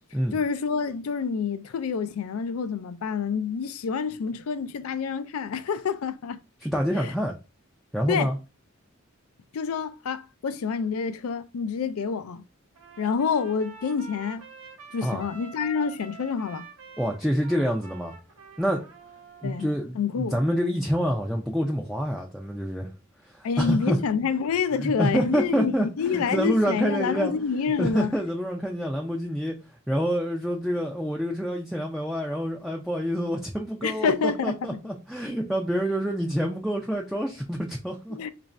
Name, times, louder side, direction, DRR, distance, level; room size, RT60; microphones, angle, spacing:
voice 1, 0.3-6.4 7.0-7.1 8.1-8.3 9.5-12.4 13.0-14.4 14.9-16.7 19.4-19.7 19.9-20.4 23.4-28.1 33.8-34.8 38.1-38.3, left 6 dB, 85° left, 0.4 m, -27 dB
voice 2, 6.6-7.3 7.9-8.4 15.0-15.2 17.0-18.1 18.6-18.8 19.4-22.9 23.2-24.0 24.8-27.3 27.8-29.6 29.9-38.2, equal, ahead, 0.4 m, -27 dB
Trumpet, 12.7-19.8, right 4 dB, 85° right, 0.9 m, -46 dB
3.1 x 2.5 x 4.2 m
head